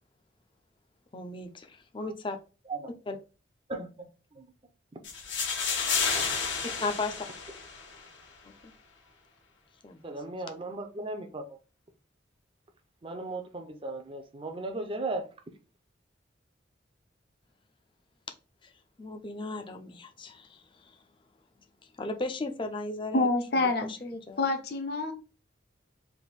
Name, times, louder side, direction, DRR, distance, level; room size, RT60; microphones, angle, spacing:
voice 1, 1.1-2.4 3.1-3.2 6.8-7.3 8.6-8.7 9.8-10.0 19.0-20.9 22.0-23.3 23.6-24.4, left 3 dB, 25° left, 0.5 m, -36 dB
voice 2, 3.7-4.5 10.0-11.6 13.0-15.2, right 2 dB, 30° right, 0.5 m, -37 dB
sound 1, 5.0-8.1, left 5 dB, 80° left, 1.4 m, -31 dB
voice 3, 23.1-23.9 24.4-25.1, left 2 dB, 55° left, 0.8 m, -27 dB
3.4 x 2.6 x 4.0 m
head